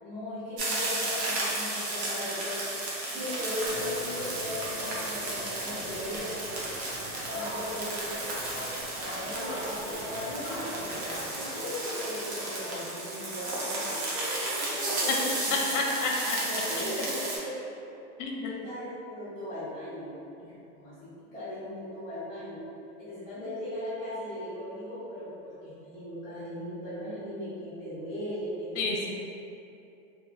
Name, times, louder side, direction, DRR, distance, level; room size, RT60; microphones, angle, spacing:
voice 1, 0.0-2.8 3.1-6.7 7.3-8.1 8.9-15.7 16.4-17.7 18.4-22.6 23.0-29.0, left 1 dB, 10° left, -18 dB, 0.7 m, -38 dB
sound 1, 0.6-17.4, right 2 dB, 55° right, 0.7 m, -34 dB
sound 2, 3.6-11.5, equal, 45° left, 1.0 m, -40 dB
voice 2, 15.7-16.4 16.8-16.9 18.2-18.6 28.8-29.1, left 3 dB, 65° left, -1 dB, 0.6 m, -30 dB
2.8 x 2.5 x 2.4 m, 2.7 s
supercardioid pair, 165°, 39 cm